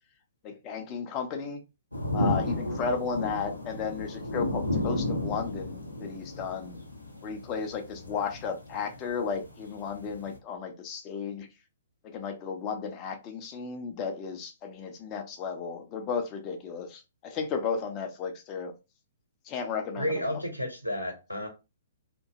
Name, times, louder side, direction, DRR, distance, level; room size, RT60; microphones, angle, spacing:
voice 1, 0.4-1.6 2.1-6.8 7.2-11.5 12.0-18.7 19.5-20.4, left 6 dB, 25° left, 0.6 m, -34 dB
sound 1, 1.9-10.4, left 1 dB, 85° left, 0.7 m, -33 dB
voice 2, 20.0-21.5, equal, 90° right, 0.8 m, -31 dB
2.7 x 2.2 x 2.8 m
figure-of-eight pair, 120°, 0 cm